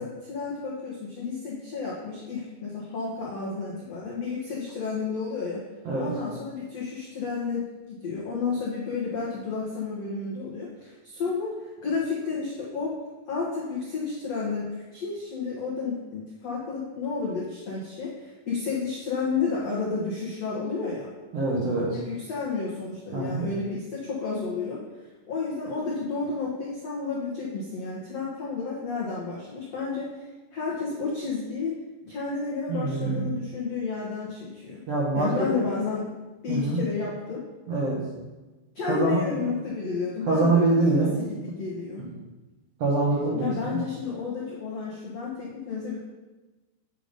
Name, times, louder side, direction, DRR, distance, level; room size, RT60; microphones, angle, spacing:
voice 1, 0.0-5.6 6.0-13.0 13.3-21.1 21.9-24.8 25.3-30.1 30.5-31.7 32.0-34.8 35.1-36.1 36.4-37.4 38.7-42.0 43.3-46.0, left 4 dB, 85° left, -5 dB, 1.4 m, -31 dB
voice 2, 21.3-22.0 23.1-23.4 32.7-33.2 34.9-35.5 36.5-36.8 37.7-38.0 38.9-39.2 40.3-41.1 42.8-43.8, right 2 dB, 75° right, -5 dB, 1.4 m, -24 dB
9.8 x 5.1 x 5.2 m, 1.2 s
omnidirectional pair, 5.3 m